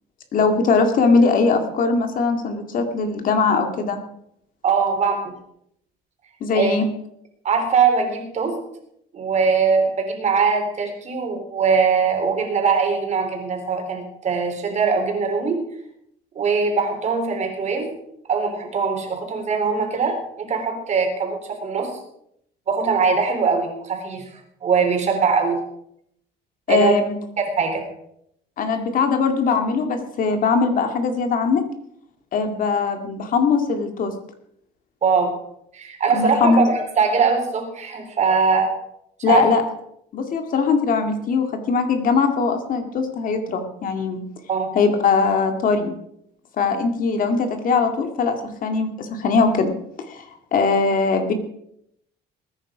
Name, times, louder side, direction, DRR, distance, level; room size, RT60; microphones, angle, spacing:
voice 1, 0.3-4.0 6.4-6.9 26.7-27.2 28.6-31.6 32.3-34.1 36.1-36.7 39.2-39.6 40.1-44.2 44.8-45.9 46.6-49.7 50.1-50.3 50.5-51.3, left 4 dB, 50° left, 6 dB, 2.1 m, -20 dB
voice 2, 4.6-5.3 6.5-6.8 7.4-8.6 9.1-15.6 16.4-17.9 18.3-21.9 22.7-24.3 24.6-25.6 26.7-27.0 27.4-27.8 35.0-35.3 35.7-38.8 39.3-39.4 44.5-44.7, right 5 dB, 40° right, 3 dB, 3.7 m, -21 dB
20.0 x 9.9 x 5.0 m, 0.74 s
cardioid pair, 140°, 18 cm